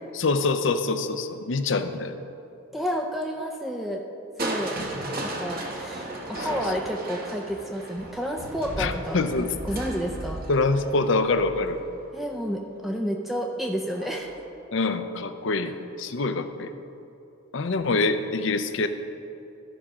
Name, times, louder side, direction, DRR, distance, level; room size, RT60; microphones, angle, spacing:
voice 1, 0.1-2.2 6.4-6.5 8.8-9.5 10.5-11.8 14.7-16.7 17.5-18.9, left 3 dB, 60° left, 9 dB, 0.6 m, -25 dB
voice 2, 2.7-4.0 4.4-4.8 5.2-9.2 9.6-10.4 12.1-14.4, equal, ahead, 1 dB, 0.4 m, -30 dB
Crushing, 4.4-12.3 13.9-14.4 14.9-15.0, right 1 dB, 45° right, 1.1 m, -35 dB
14.0 x 4.9 x 6.0 m, 2.9 s
head